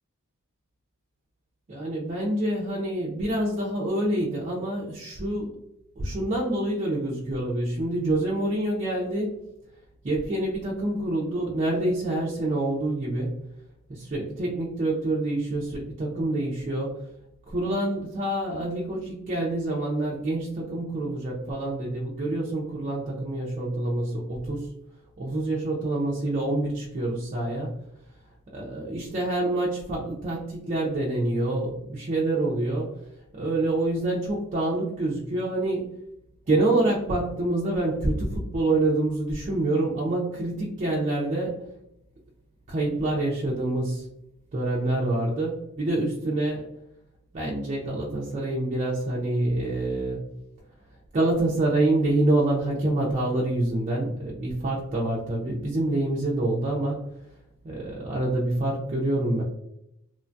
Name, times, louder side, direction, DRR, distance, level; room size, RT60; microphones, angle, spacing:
voice 1, 1.7-5.6 6.0-9.4 10.0-13.4 13.9-17.0 17.5-24.7 25.2-27.7 28.5-33.0 33.3-35.9 36.5-41.6 42.7-44.1 44.5-46.7 47.3-50.3 51.1-57.0 57.6-59.4, right 2 dB, 35° right, -4 dB, 0.4 m, -26 dB
3.0 x 2.2 x 2.5 m, 0.82 s
head